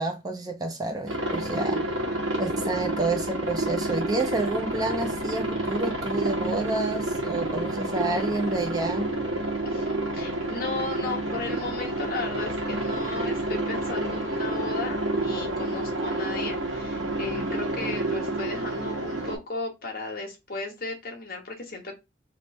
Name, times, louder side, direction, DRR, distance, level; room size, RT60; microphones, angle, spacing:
voice 1, 0.0-1.8 2.4-9.1, right 2 dB, 20° right, 0.4 m, -29 dB
Aircraft, 1.1-19.4, right 1 dB, 85° right, 1.3 m, -29 dB
voice 2, 9.6-22.0, left 3 dB, 50° left, 1.2 m, -35 dB
3.2 x 2.6 x 4.1 m
head